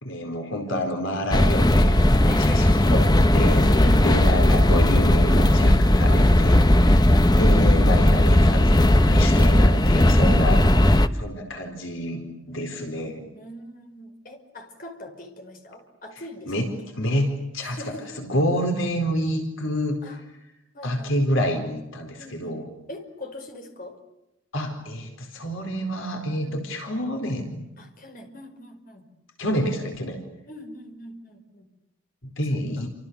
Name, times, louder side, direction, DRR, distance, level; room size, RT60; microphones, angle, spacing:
voice 1, 0.0-6.9 7.4-12.2 12.5-13.2 16.5-16.7 16.9-17.8 18.2-20.0 20.8-22.7 24.5-27.7 29.4-30.2 32.4-32.9, equal, 70° left, 4 dB, 4.4 m, -28 dB
sound 1, 1.3-11.1, left 1 dB, 20° left, 1.0 m, -17 dB
voice 2, 2.2-2.9 3.5-4.4 6.8-7.7 13.3-16.5 17.6-18.1 20.0-20.2 20.7-21.1 22.2-22.6 22.9-24.0 26.4-26.8 27.8-29.1 30.5-31.7, left 1 dB, 40° left, 4 dB, 5.4 m, -41 dB
30.0 x 27.5 x 7.1 m, 0.88 s
head